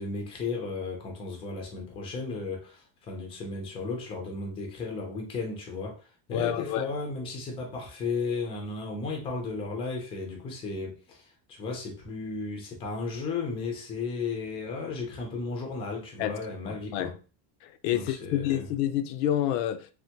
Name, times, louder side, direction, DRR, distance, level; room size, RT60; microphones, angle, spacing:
voice 1, 0.0-17.2 17.9-18.7, left 4 dB, 15° left, 0.4 m, -34 dB
voice 2, 6.3-6.9 16.2-16.4 16.7-17.1 17.6-19.9, left 11 dB, 85° left, 0.5 m, -28 dB
3.3 x 2.1 x 2.8 m
cardioid pair, 155°, 49 cm